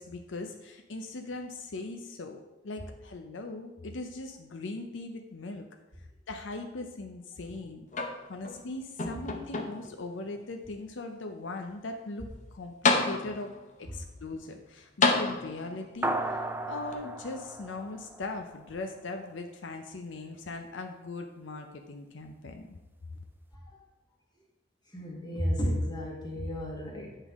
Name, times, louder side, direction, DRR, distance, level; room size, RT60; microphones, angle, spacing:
voice 1, 0.0-5.6 6.3-7.9 8.3-13.5 13.8-22.7, left 3 dB, 80° left, 4 dB, 0.6 m, -39 dB
sound 1, 7.9-8.6 9.0-10.0 10.7-10.8 12.4-12.5 12.8-13.6 15.0-15.9 16.9-17.0, left 3 dB, 40° left, 0.7 m, -28 dB
sound 2, 16.0-18.7, right 2 dB, 10° right, 0.3 m, -35 dB
voice 2, 24.9-27.2, equal, 25° left, -2 dB, 1.6 m, -32 dB
8.3 x 5.4 x 3.6 m, 0.98 s
head